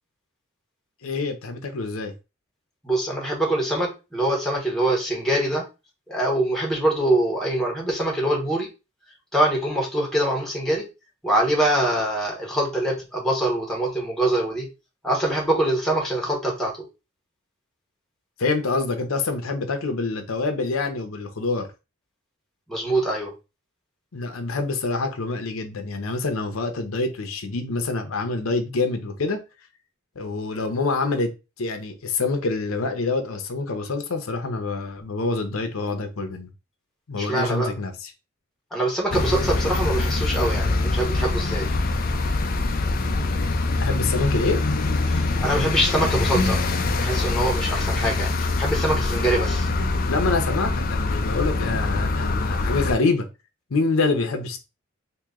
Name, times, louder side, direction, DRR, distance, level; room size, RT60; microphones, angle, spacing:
voice 1, 1.0-2.1 18.4-21.7 24.1-29.4 30.2-31.3 31.6-36.5 37.1-38.1 43.8-44.6 50.1-53.3 53.7-54.6, left 3 dB, 85° left, 0.7 m, -26 dB
voice 2, 2.8-5.6 6.1-8.7 9.3-10.9 11.2-14.7 15.0-16.7 22.7-23.3 37.2-37.7 38.7-41.7 45.1-46.6 47.0-49.7, right 1 dB, ahead, 1.1 m, -24 dB
sound 1, 39.1-52.9, left 2 dB, 45° left, 0.5 m, -24 dB
3.0 x 2.7 x 3.6 m
head